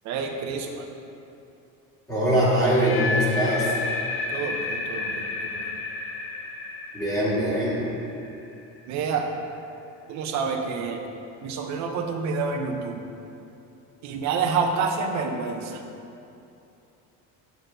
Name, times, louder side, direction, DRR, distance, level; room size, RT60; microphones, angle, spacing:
voice 1, 0.0-0.8 4.3-5.8 8.9-9.2 10.1-11.0 11.4-13.0 14.0-15.8, right 5 dB, 50° right, 3 dB, 0.9 m, -28 dB
voice 2, 2.1-3.7 6.9-7.8, equal, 10° left, -9 dB, 1.9 m, -22 dB
sound 1, 2.6-8.6, left 3 dB, 35° left, 0.7 m, -31 dB
8.1 x 4.3 x 6.8 m, 2.7 s
cardioid pair, 170°, 34 cm